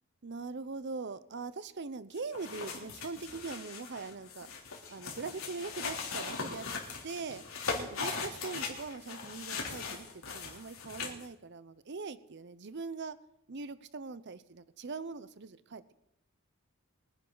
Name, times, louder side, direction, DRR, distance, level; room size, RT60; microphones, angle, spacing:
voice 1, 0.2-4.5 4.9-6.7 7.0-7.4 7.7-10.1 10.3-13.2 13.5-15.9, right 4 dB, 55° right, 15 dB, 0.7 m, -41 dB
sound 1, 2.2-11.2, left 4 dB, 90° left, 3.3 m, -40 dB
23.5 x 10.0 x 4.0 m, 0.82 s
head